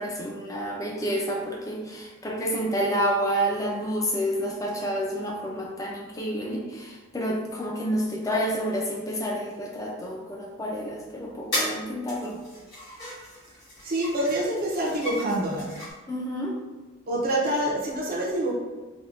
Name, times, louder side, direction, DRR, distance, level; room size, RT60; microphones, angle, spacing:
voice 1, 0.0-12.4 16.1-16.6, equal, 15° left, -1 dB, 0.3 m, -29 dB
sound 1, 10.9-11.0 11.5-11.8 12.1-15.9, left 1 dB, 55° left, 1.3 m, -35 dB
voice 2, 13.8-15.7 17.1-18.5, right 1 dB, 40° right, -4 dB, 0.5 m, -26 dB
3.5 x 2.1 x 2.4 m, 1.3 s
head